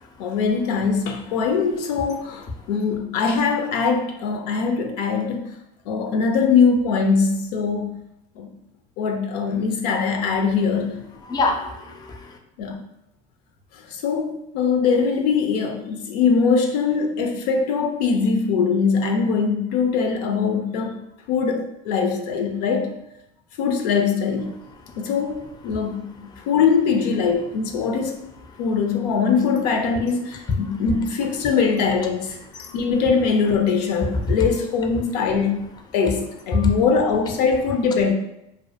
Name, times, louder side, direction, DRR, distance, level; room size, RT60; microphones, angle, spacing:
voice 1, 0.2-5.5 5.9-8.0 8.4-8.5 9.0-11.0 12.6-12.8 13.9-21.0 21.3-22.9 23.6-24.6 25.0-26.1 26.5-28.2 28.6-32.4 32.7-35.6 35.9-38.1, left 5 dB, 90° left, 4 dB, 0.4 m, -22 dB
voice 2, 11.2-12.4 24.9-25.0 25.7-26.0 26.3-26.4 28.5-28.6 30.5-30.8 32.5-32.8 34.1-34.2 36.5-36.7, left 3 dB, 20° left, 4 dB, 0.4 m, -26 dB
2.3 x 2.1 x 2.7 m, 0.83 s
supercardioid pair, 95°, 20 cm